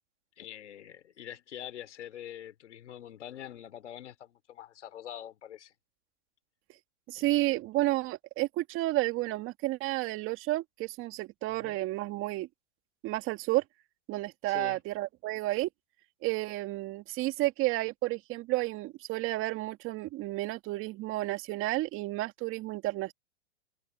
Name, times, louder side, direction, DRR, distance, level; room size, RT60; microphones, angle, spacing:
voice 1, 0.4-5.7 7.2-7.3 11.5-11.8 14.5-14.8, left 11 dB, 80° left, 3.8 m, -45 dB
voice 2, 7.1-12.5 13.0-13.6 14.1-15.7 16.2-23.1, right 18 dB, 35° right, 2.5 m, -31 dB
hypercardioid pair, 125°, 35 cm